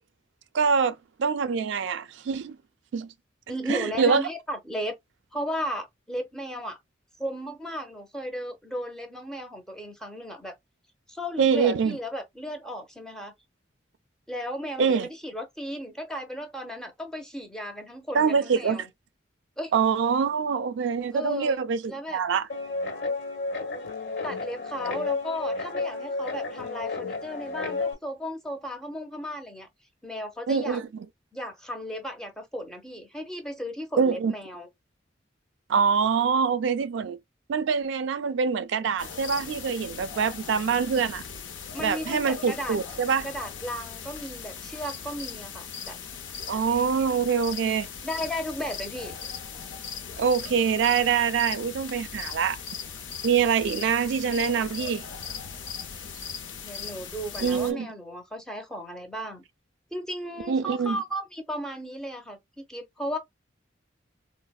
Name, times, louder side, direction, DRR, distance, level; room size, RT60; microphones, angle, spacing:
voice 1, 0.5-2.6 2.9-3.1 3.7-4.2 11.4-12.0 14.8-15.1 18.1-18.9 19.7-22.5 30.5-31.1 34.0-34.3 35.7-37.2 37.5-41.2 41.8-43.3 46.5-47.9 50.2-52.6 53.2-55.0 57.4-57.9 60.5-61.0, right 6 dB, 70° right, 0.3 m, -25 dB
voice 2, 3.5-5.0 5.3-6.8 7.2-10.5 11.1-13.3 14.3-18.9 19.6-19.7 21.1-22.2 24.2-29.7 30.0-30.8 31.3-34.7 41.7-42.8 43.2-46.0 48.0-49.1 56.6-59.4 59.9-63.2, equal, 5° left, 0.6 m, -35 dB
Guitar, 22.5-27.9, left 3 dB, 60° left, 1.2 m, -32 dB
sound 1, 39.0-57.7, left 6 dB, 85° left, 0.6 m, -39 dB
4.1 x 2.0 x 2.3 m
head